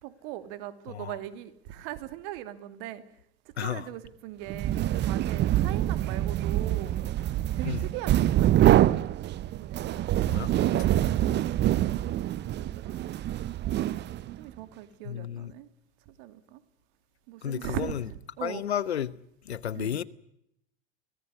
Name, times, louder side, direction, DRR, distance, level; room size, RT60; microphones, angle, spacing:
voice 1, 0.0-3.0 3.4-7.0 7.6-8.9 9.6-10.8 11.3-13.0 14.3-15.7 16.1-16.6 17.3-18.6 19.7-19.9, right 12 dB, 60° right, 2.8 m, -40 dB
voice 2, 0.9-1.2 3.6-3.9 7.6-7.9 10.2-10.9 15.0-15.5 17.4-18.0 18.4-19.1 19.4-20.0, left 9 dB, 85° left, 1.1 m, -32 dB
sound 1, 4.5-14.4, right 13 dB, 35° right, 0.9 m, -25 dB
24.5 x 18.0 x 9.9 m
hypercardioid pair, 90°, 31 cm